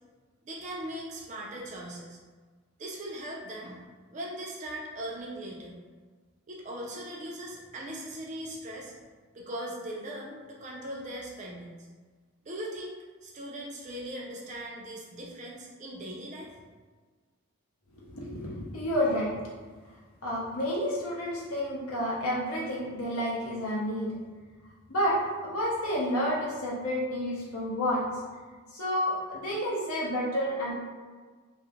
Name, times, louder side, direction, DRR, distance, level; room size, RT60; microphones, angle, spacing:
voice 1, 0.4-2.2 2.8-3.8 4.1-5.8 6.5-8.9 9.3-11.7 12.5-12.9 13.2-16.5, right 1 dB, 30° right, -2 dB, 0.3 m, -39 dB
voice 2, 18.1-19.3 20.2-24.1 24.9-28.0 28.7-30.7, equal, 75° left, -5 dB, 0.7 m, -30 dB
2.4 x 2.0 x 2.8 m, 1.4 s
head